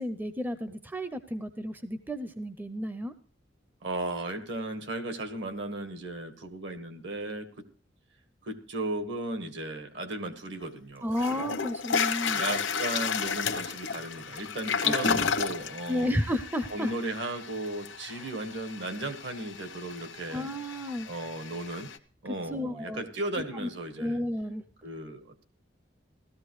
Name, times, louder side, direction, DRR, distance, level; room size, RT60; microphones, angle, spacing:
voice 1, 0.0-3.1 11.0-12.4 14.8-15.2 15.9-16.9 18.1-18.2 20.3-21.1 22.5-23.1 23.6-23.7 24.0-24.6, left 1 dB, 10° right, 10 dB, 0.5 m, -32 dB
voice 2, 3.8-7.6 8.4-11.1 12.3-16.1 16.7-20.5 21.0-21.9 22.2-24.2 24.8-25.4, right 2 dB, 65° right, 8 dB, 1.5 m, -36 dB
Toilet flush, 10.6-10.7 11.2-22.0, left 6 dB, 80° left, 0.9 m, -33 dB
15.5 x 13.5 x 3.1 m, 0.41 s
head